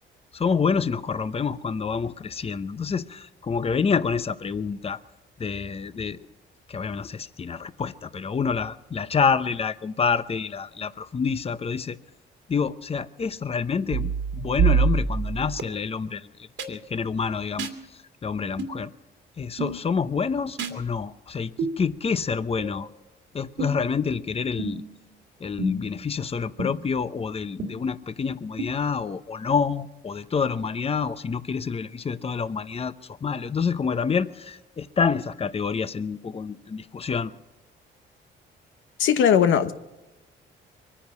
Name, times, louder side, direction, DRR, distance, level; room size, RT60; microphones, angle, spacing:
voice 1, 0.3-5.0 5.4-6.2 6.7-12.0 12.5-18.9 19.4-22.9 23.3-24.8 25.4-37.3, left 5 dB, 30° left, 0.8 m, -27 dB
sound 1, 13.9-15.6 16.6-16.7 17.6-17.8 18.6-18.8 19.6-19.8 20.6-20.8 21.6-21.7 22.6-22.7 23.6-23.9 24.6-24.9 25.6-26.0 26.6-26.7 27.6-27.7 28.6-28.7, right 5 dB, 75° right, 2.1 m, -26 dB
voice 2, 39.0-39.7, left 8 dB, 80° left, 1.1 m, -19 dB
23.5 x 10.0 x 6.1 m
cardioid pair, 90°, 20 cm